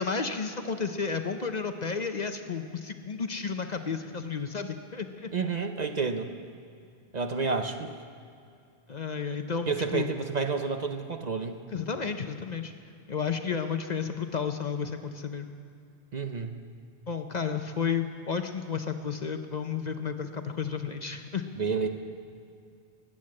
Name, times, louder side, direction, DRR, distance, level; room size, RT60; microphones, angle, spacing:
voice 1, 0.0-5.3 8.9-10.1 11.7-12.7 13.1-15.5 17.1-21.4, left 6 dB, 45° left, 7 dB, 0.8 m, -32 dB
voice 2, 5.3-6.3 7.1-7.9 9.7-11.5 16.1-16.6 21.6-21.9, right 4 dB, 45° right, 6 dB, 0.8 m, -30 dB
20.5 x 8.9 x 7.6 m, 2.4 s
omnidirectional pair, 1.1 m